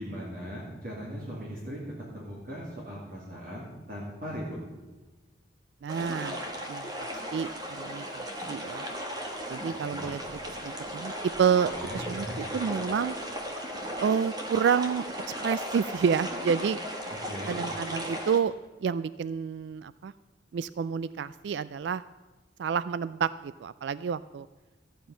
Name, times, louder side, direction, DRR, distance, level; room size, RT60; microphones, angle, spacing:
voice 1, 0.0-1.8 2.1-4.6 9.9-10.2 11.6-12.5 17.2-17.6, equal, 50° right, -5 dB, 2.5 m, -39 dB
voice 2, 5.8-6.4 6.7-8.9 9.5-10.2 10.6-11.1 11.4-11.7 11.9-12.3 12.5-13.1 14.0-15.0 15.4-16.8 17.5-18.5 18.8-20.1 20.5-22.0 22.6-24.5, right 7 dB, 65° right, 17 dB, 0.3 m, -29 dB
sound 1, 5.9-18.4, equal, 20° right, 1.3 m, -36 dB
14.5 x 9.3 x 5.5 m, 1.2 s
head